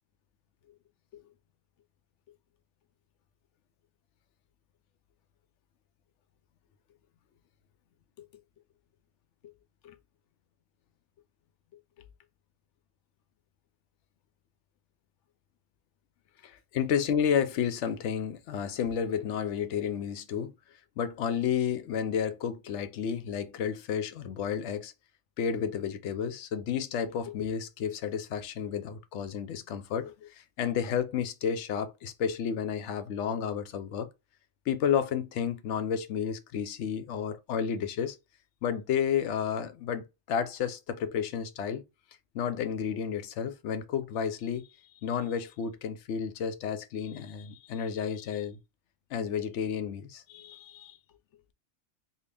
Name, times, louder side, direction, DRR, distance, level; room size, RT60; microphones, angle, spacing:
voice 1, 16.4-20.5 21.0-24.9 25.4-34.1 34.7-38.2 38.6-41.8 42.3-44.7 45.0-48.6 49.1-51.0, left 8 dB, 75° left, 0.9 m, -31 dB
3.7 x 2.2 x 3.3 m
omnidirectional pair, 1.2 m